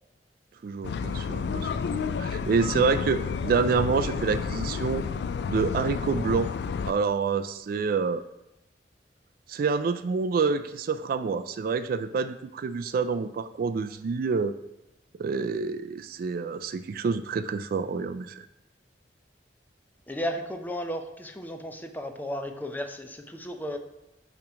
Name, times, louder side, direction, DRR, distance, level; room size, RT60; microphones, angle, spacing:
voice 1, 0.6-5.0 5.5-6.5 6.9-8.2 9.5-14.5 15.2-18.4, right 5 dB, 55° right, 11 dB, 0.3 m, -27 dB
sound 1, 0.8-6.9, left 6 dB, 65° left, 0.3 m, -31 dB
voice 2, 20.1-23.8, equal, 10° left, 6 dB, 0.5 m, -34 dB
8.8 x 3.0 x 5.0 m, 0.92 s
head